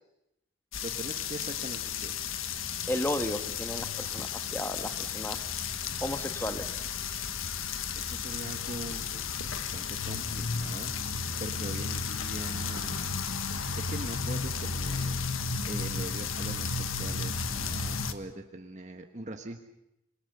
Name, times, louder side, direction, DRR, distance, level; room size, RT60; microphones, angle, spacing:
sound 1, 0.7-18.1, left 5 dB, 85° left, 1.5 m, -33 dB
voice 1, 0.8-2.2 7.9-10.9 11.4-13.1 13.8-15.2 15.7-19.6, right 1 dB, 35° right, 5 dB, 1.3 m, -42 dB
voice 2, 2.9-4.3 4.5-5.4 6.0-6.8, left 1 dB, 10° left, 8 dB, 1.5 m, -33 dB
27.0 x 22.0 x 6.8 m, 0.85 s
head